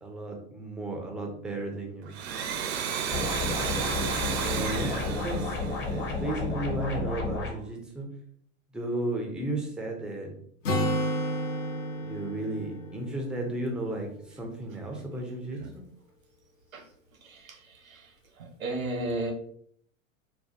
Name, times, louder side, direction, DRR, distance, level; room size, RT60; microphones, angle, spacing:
voice 1, 0.0-2.1 4.4-5.6 5.9-8.1 8.7-10.3 12.0-15.8, right 2 dB, ahead, 1 dB, 0.4 m, -34 dB
Domestic sounds home sounds, 2.0-6.5, right 7 dB, 50° right, 0.6 m, -33 dB
sound 1, 3.1-7.5, left 3 dB, 25° left, 0.7 m, -31 dB
Acoustic guitar, 10.6-14.4, equal, 70° left, 0.9 m, -32 dB
voice 2, 17.2-18.1 18.4-19.3, right 2 dB, 80° right, 2 dB, 0.9 m, -34 dB
4.1 x 2.2 x 2.7 m, 0.62 s
figure-of-eight pair, 90°, 40 cm